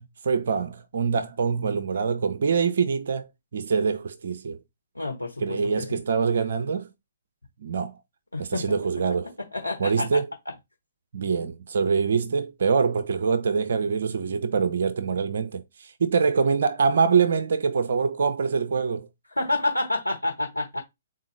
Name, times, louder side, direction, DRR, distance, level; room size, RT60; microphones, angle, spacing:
voice 1, 0.0-4.6 5.4-6.9 7.6-8.0 8.4-9.3 9.8-10.3 11.1-19.1, right 5 dB, 60° right, 0.5 m, -24 dB
voice 2, 4.9-6.0 8.3-8.6 9.4-10.1 19.4-20.8, left 2 dB, 90° left, 1.1 m, -28 dB
4.0 x 3.7 x 3.2 m
figure-of-eight pair, 125°, 0 cm